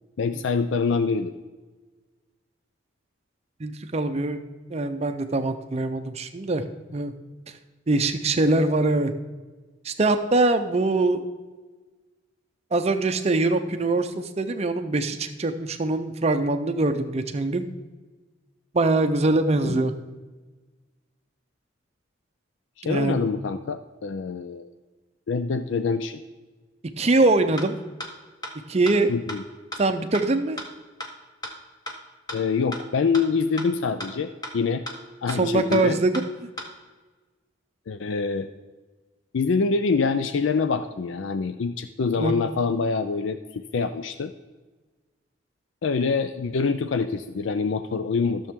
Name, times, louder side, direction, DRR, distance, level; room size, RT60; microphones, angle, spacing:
voice 1, 0.2-1.3 19.6-19.9 22.8-24.7 25.3-26.2 29.1-29.4 32.3-34.8 35.2-36.0 37.9-38.5 39.3-44.3 45.8-48.5, left 4 dB, 80° left, 10 dB, 0.4 m, -25 dB
voice 2, 3.6-4.4 4.7-6.6 6.9-7.1 7.9-9.1 9.8-11.2 12.7-17.6 18.7-19.9 22.8-23.2 27.0-27.8 28.7-29.1 29.8-30.6 35.4-36.2 42.2-42.3, right 2 dB, 35° right, 8 dB, 0.5 m, -23 dB
sound 1, 27.6-27.7 28.0-28.1 28.4-28.5 28.9-29.0 29.3-29.4 29.7-29.8 30.1-30.2 30.6-30.7 31.0-31.1 31.4-31.5 31.9-32.0 32.3-32.4 32.7-32.8 33.1-33.2 33.6-33.7 34.0-34.1 34.4-34.5 34.9-35.0 35.3-35.4 35.7-35.8 36.1-36.2 36.6-36.7, left 1 dB, 20° left, 1.3 m, -33 dB
13.0 x 6.9 x 3.6 m, 1.3 s
head